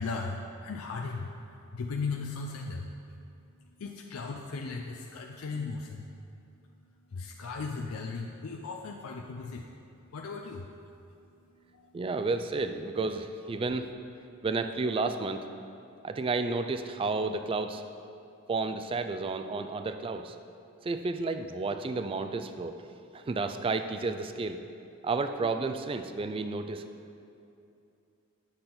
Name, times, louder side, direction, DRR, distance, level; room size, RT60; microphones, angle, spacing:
voice 1, 0.0-6.1 7.1-9.7 10.1-10.7 11.2-12.0, left 4 dB, 80° left, 1 dB, 0.4 m, -37 dB
voice 2, 11.9-13.9 14.4-15.4 16.0-17.8 18.5-20.4 20.8-22.8 23.1-24.6 25.0-26.8, right 3 dB, 25° right, 8 dB, 0.3 m, -31 dB
8.7 x 5.9 x 3.8 m, 2.6 s
head